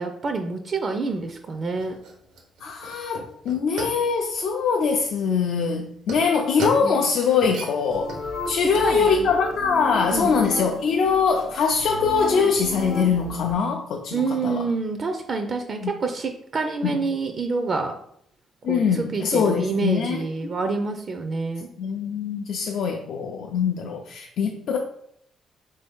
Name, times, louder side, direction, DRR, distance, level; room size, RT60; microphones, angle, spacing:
voice 1, 0.0-1.9 6.8-7.0 8.5-9.4 10.1-10.5 14.1-17.9 18.7-21.7, right 4 dB, 45° right, 5 dB, 0.4 m, -27 dB
sound 1, 1.1-10.3, right 2 dB, 90° right, 0.9 m, -38 dB
voice 2, 2.6-8.1 8.5-14.6 15.8-15.9 16.8-17.0 18.6-20.2 21.8-24.8, left 5 dB, 70° left, 2 dB, 0.4 m, -23 dB
sound 2, 7.9-13.5, left 2 dB, 85° left, 0.8 m, -34 dB
3.8 x 2.7 x 3.5 m, 0.70 s
cardioid pair, 90°, 0 cm